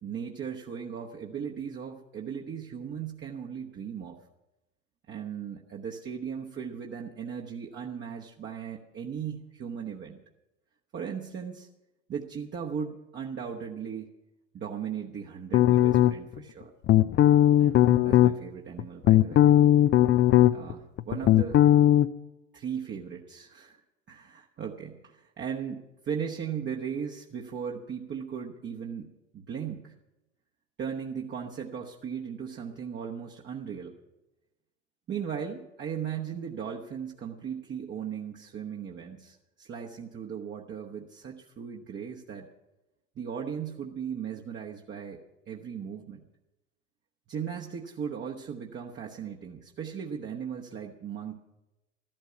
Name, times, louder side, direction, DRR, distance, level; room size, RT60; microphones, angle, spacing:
voice 1, 0.0-4.2 5.1-10.2 10.9-11.7 12.1-14.1 14.5-16.7 17.6-19.4 20.5-21.6 22.5-23.8 24.1-29.9 30.8-33.9 35.1-42.5 43.2-45.2 45.5-46.2 47.3-51.4, right 7 dB, 30° right, -1 dB, 1.1 m, -37 dB
sound 1, 15.5-16.4 16.9-18.3 18.8-20.7 21.0-22.1, left 12 dB, 30° left, 0.5 m, -19 dB
14.0 x 12.0 x 5.8 m, 0.98 s
figure-of-eight pair, 75°, 37 cm